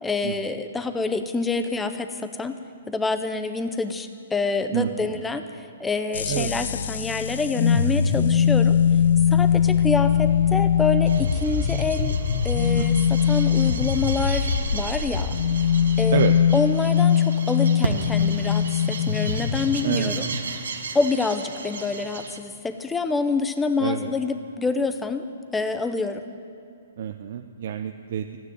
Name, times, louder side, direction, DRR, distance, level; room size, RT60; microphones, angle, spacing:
voice 1, 0.0-2.6 2.9-5.4 5.8-8.8 9.3-12.2 12.4-15.4 16.0-16.2 16.5-20.2 20.9-25.3 25.5-26.2, left 3 dB, 5° left, 8 dB, 0.6 m, -27 dB
voice 2, 4.7-5.2 6.3-6.5 12.7-13.2 16.1-16.3 19.8-20.4 23.8-24.1 27.0-28.4, right 9 dB, 50° right, 6 dB, 0.6 m, -28 dB
sound 1, 6.1-19.0, left 7 dB, 70° left, 0.5 m, -33 dB
sound 2, 7.5-20.4, left 8 dB, 50° left, 1.0 m, -21 dB
sound 3, 11.1-22.4, right 4 dB, 85° right, 1.6 m, -35 dB
15.0 x 9.5 x 9.8 m, 2.4 s
hypercardioid pair, 165°, 0 cm